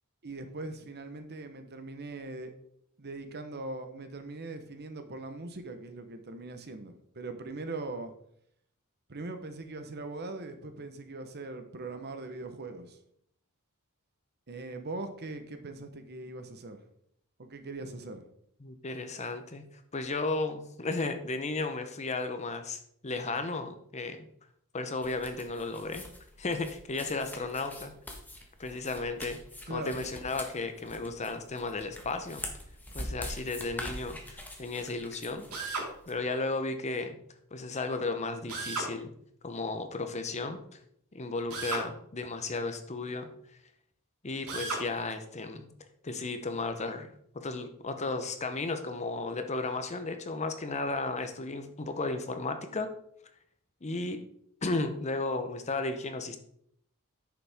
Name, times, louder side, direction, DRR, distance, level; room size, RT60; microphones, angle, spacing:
voice 1, 0.2-2.5 3.0-8.1 9.1-13.0 14.5-16.8 17.4-18.2 29.7-30.1, right 2 dB, 50° right, 8 dB, 1.0 m, -41 dB
voice 2, 18.6-19.6 19.9-24.3 24.7-26.0 26.4-27.9 28.6-29.4 29.7-32.4 32.9-37.2 37.5-39.1 39.4-40.6 41.1-43.3 44.2-45.7 46.0-52.9 53.8-54.2 54.6-56.4, left 3 dB, 30° left, 8 dB, 0.8 m, -34 dB
sound 1, 25.0-36.1, left 1 dB, 10° left, 1.3 m, -44 dB
Drill, 35.5-35.9 38.5-38.9 41.5-41.9 44.5-44.9, right 3 dB, 80° right, 2.6 m, -34 dB
9.4 x 6.9 x 3.6 m, 0.69 s
head